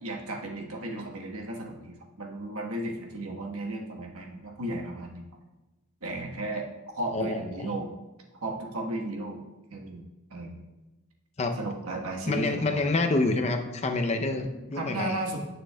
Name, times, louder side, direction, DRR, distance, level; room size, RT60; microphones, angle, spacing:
voice 1, 0.0-5.2 6.0-6.7 6.9-7.9 8.4-9.4 9.7-10.0 10.3-10.7 11.6-12.8 14.8-15.4, right 1 dB, 80° right, 0 dB, 1.3 m, -34 dB
voice 2, 7.1-7.7 11.4-11.6 12.3-15.2, left 2 dB, 30° left, 5 dB, 0.5 m, -27 dB
10.0 x 6.3 x 2.2 m, 1.1 s
head